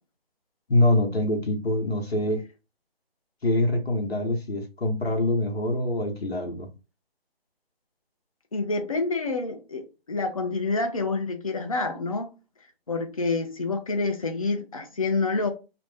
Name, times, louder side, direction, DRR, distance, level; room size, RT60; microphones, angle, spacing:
voice 1, 0.7-2.4 3.4-6.7, left 1 dB, 85° left, 1.0 m, -24 dB
voice 2, 8.5-12.3 12.9-15.5, left 3 dB, 35° left, 0.4 m, -28 dB
2.5 x 2.1 x 3.2 m
figure-of-eight pair, 155°, 30 cm